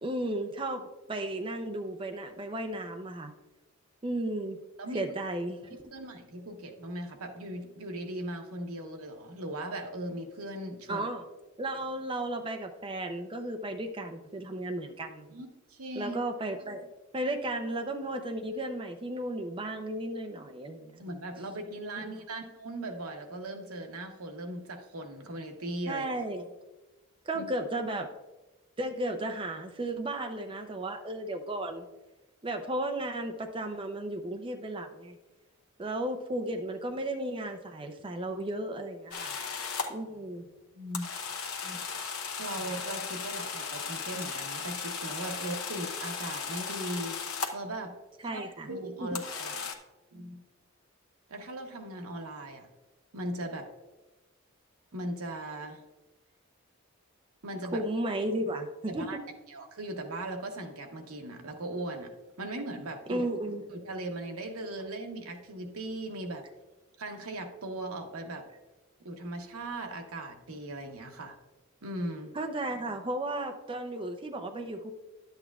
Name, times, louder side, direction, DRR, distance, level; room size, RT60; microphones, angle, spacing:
voice 1, 0.0-3.3 4.0-4.6 4.9-5.8 10.9-11.2 11.6-15.3 16.0-16.9 17.1-21.1 22.0-22.1 25.9-26.5 27.3-28.1 28.8-31.9 32.4-35.2 35.8-39.4 39.9-40.4 41.6-41.8 48.2-48.7 49.0-49.1 57.7-59.1 63.1-63.6 72.3-74.9, right 1 dB, 25° right, 4 dB, 0.5 m, -34 dB
voice 2, 5.9-11.1 15.3-16.2 21.0-26.0 27.3-27.5 40.7-41.1 42.4-47.2 47.5-47.9 48.2-49.7 50.1-50.4 51.3-52.7 53.1-53.7 54.9-55.8 57.4-57.8 58.9-59.2 59.5-62.1 62.4-66.5 67.0-68.5 69.0-71.4 71.8-72.3, right 1 dB, 80° right, 4 dB, 1.0 m, -38 dB
sound 1, 39.1-39.9 40.9-47.7 49.2-49.7, left 5 dB, 75° left, 0.9 m, -36 dB
11.0 x 7.9 x 2.3 m, 1.1 s
head